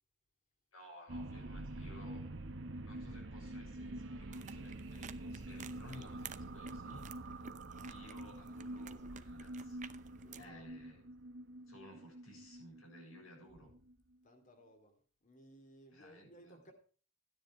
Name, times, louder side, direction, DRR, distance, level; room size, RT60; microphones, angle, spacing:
voice 1, 0.7-2.3 2.7-7.4 7.8-9.8 10.3-11.0 11.7-13.7 15.9-16.6, left 1 dB, 80° left, 6.7 m, -57 dB
sound 1, 1.1-13.9, right 1 dB, 65° right, 1.1 m, -46 dB
sound 2, 4.3-10.5, right 7 dB, 35° right, 0.7 m, -54 dB
voice 2, 10.2-10.7 14.2-14.9 15.2-16.7, equal, 40° left, 2.6 m, -59 dB
13.0 x 10.0 x 4.8 m
head